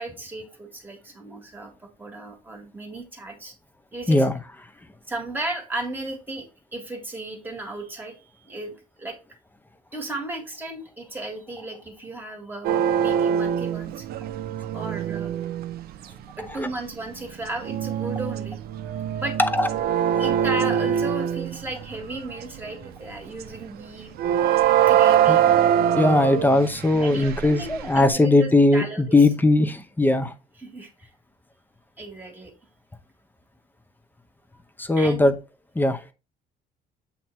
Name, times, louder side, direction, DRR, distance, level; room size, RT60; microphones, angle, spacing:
voice 1, 0.0-3.5 3.9-4.3 5.1-9.2 9.9-14.1 14.7-15.3 16.4-18.6 19.2-19.4 20.2-24.2 24.9-25.5 26.9-29.2 30.6-31.1 32.0-32.5 35.0-35.4, right 2 dB, 10° right, 1 dB, 1.9 m, -35 dB
sound 1, 12.6-16.0 16.6-16.8 17.4-22.9 23.4-23.7 24.2-28.1, right 10 dB, 65° right, 0.5 m, -23 dB
voice 2, 26.0-30.3 34.8-35.3 35.8-36.0, left 2 dB, 10° left, 10 dB, 0.7 m, -19 dB
7.6 x 2.8 x 4.4 m, 0.31 s
cardioid pair, 110°, 17 cm